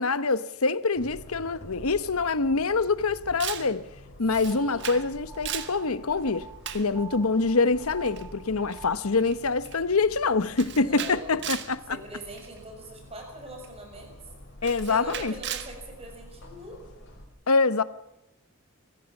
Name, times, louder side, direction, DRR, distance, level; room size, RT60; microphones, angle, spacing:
voice 1, 0.0-3.8 4.2-6.5 6.7-11.8 14.6-15.3 17.5-17.8, left 4 dB, 85° left, 1.0 m, -25 dB
sound 1, 0.9-17.3, left 1 dB, 60° left, 5.5 m, -48 dB
Camera, 3.4-3.7 4.3-5.1 5.3-5.8 6.6-6.9 8.1-8.3 8.7-8.8 9.2-9.4 9.6-9.9 10.6-11.7 12.4-12.6 13.6-13.7 14.6-15.7, right 10 dB, 55° right, 1.5 m, -36 dB
sound 2, 4.4-9.3, right 3 dB, 10° right, 3.5 m, -47 dB
voice 2, 4.5-5.0 10.6-11.5 11.9-14.1 14.9-16.8, right 1 dB, 30° right, 6.3 m, -43 dB
24.0 x 16.0 x 7.2 m
head